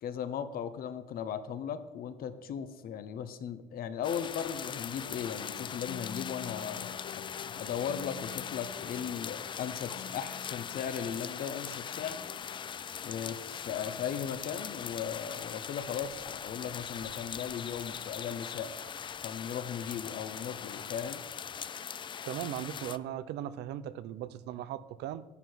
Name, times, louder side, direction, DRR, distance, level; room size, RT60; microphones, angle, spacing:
voice 1, 0.0-12.2 13.0-18.7 19.2-21.2, left 8 dB, 60° left, 11 dB, 1.0 m, -37 dB
sound 1, 4.0-23.0, left 7 dB, 30° left, 0.3 m, -41 dB
sound 2, 5.0-18.5, left 10 dB, 85° left, 0.6 m, -51 dB
voice 2, 22.2-25.2, right 11 dB, 80° right, 15 dB, 0.6 m, -38 dB
11.0 x 9.2 x 4.6 m, 1.0 s
cardioid pair, 110°, 17 cm